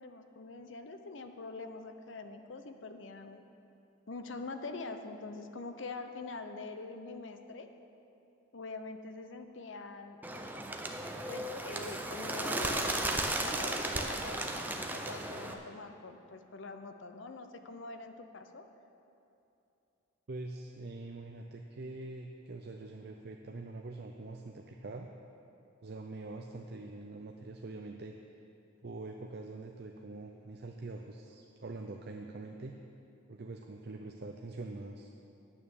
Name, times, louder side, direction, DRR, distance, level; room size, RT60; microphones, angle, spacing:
voice 1, 0.0-3.4 4.1-7.7 8.5-10.2 11.3-18.6, left 3 dB, 65° left, 7 dB, 0.7 m, -44 dB
Bird, 10.2-15.5, right 1 dB, 10° right, 0.6 m, -35 dB
voice 2, 20.3-25.1 25.8-28.1 28.8-32.7 33.3-35.1, right 2 dB, 50° right, 3 dB, 0.5 m, -44 dB
9.2 x 8.6 x 7.1 m, 2.8 s
head